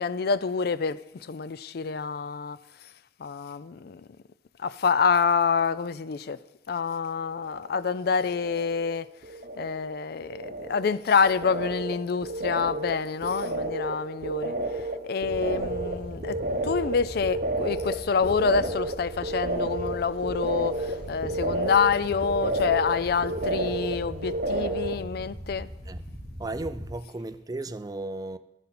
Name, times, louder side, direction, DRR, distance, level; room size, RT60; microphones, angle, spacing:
voice 1, 0.0-2.9 3.2-4.1 4.6-6.4 6.7-9.1 9.6-25.7, left 5 dB, 60° left, 0.4 m, -27 dB
sound 1, 7.4-7.9 8.2-9.0 9.2-25.0, right 2 dB, 50° right, 0.9 m, -32 dB
sound 2, 15.2-26.9, equal, 35° left, 3.5 m, -41 dB
voice 2, 26.4-28.4, right 2 dB, 20° right, 0.4 m, -35 dB
12.0 x 9.6 x 4.2 m
head